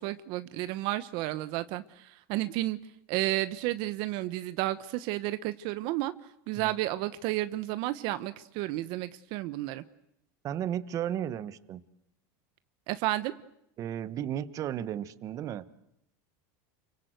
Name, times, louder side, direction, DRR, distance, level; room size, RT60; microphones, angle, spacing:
voice 1, 0.0-2.8 3.1-6.1 6.5-9.8 12.9-13.3, right 16 dB, 55° right, 13 dB, 1.0 m, -32 dB
voice 2, 10.4-11.8 13.8-15.8, right 10 dB, 35° right, 15 dB, 1.2 m, -34 dB
29.5 x 24.0 x 8.0 m, 0.78 s
supercardioid pair, 145°, 9 cm